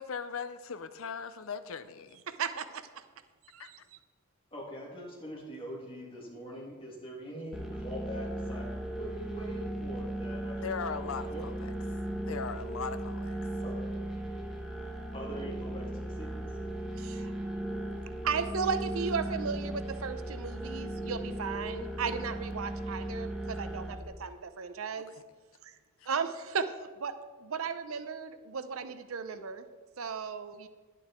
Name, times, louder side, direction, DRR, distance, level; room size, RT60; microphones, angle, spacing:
voice 1, 0.0-2.2 3.6-3.7 10.6-11.7 12.2-13.4 25.1-25.2 26.0-26.1, left 6 dB, 75° left, 12 dB, 0.7 m, -39 dB
voice 2, 2.3-2.9 3.5-3.8 17.0-17.3 18.2-25.1 25.6-25.7 26.1-27.1 27.4-29.7 30.0-30.7, right 5 dB, 80° right, 10 dB, 0.7 m, -35 dB
voice 3, 4.5-11.5 13.6-13.7 15.1-16.5, equal, 25° left, -4 dB, 3.0 m, -43 dB
sound 1, 7.5-24.0, right 1 dB, ahead, 1.2 m, -37 dB
11.0 x 9.8 x 4.4 m, 1.4 s
head